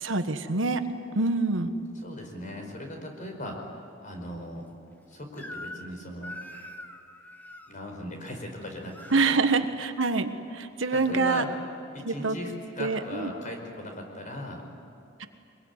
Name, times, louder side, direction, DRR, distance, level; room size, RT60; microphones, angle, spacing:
voice 1, 0.0-0.8 1.1-1.7 9.1-11.4 12.0-12.4 12.8-13.3, right 3 dB, 75° right, 8 dB, 1.4 m, -25 dB
voice 2, 1.9-4.7 5.1-6.4 7.7-9.4 10.9-11.5 11.9-14.6, left 1 dB, 40° left, 3 dB, 5.2 m, -38 dB
Crying sobbing / Screech, 5.4-5.9 6.2-7.7 8.5-9.2, left 1 dB, 10° left, 1.6 m, -43 dB
24.5 x 22.0 x 9.8 m, 2.6 s
head